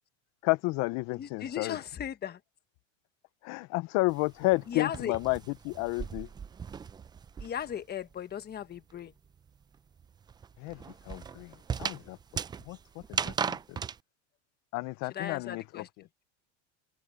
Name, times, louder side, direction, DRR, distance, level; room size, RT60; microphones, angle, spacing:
voice 1, 0.4-1.8 3.4-6.3 10.6-12.2 12.7-12.8 13.1-13.8 14.7-15.8, left 23 dB, 45° left, 0.6 m, -31 dB
voice 2, 1.1-2.4 4.7-5.2 7.4-9.1 15.1-15.9, left 9 dB, 25° left, 1.4 m, -36 dB
sound 1, 4.1-7.8 8.1-14.0, right 6 dB, 10° right, 0.4 m, -38 dB
supercardioid pair, 125°, 37 cm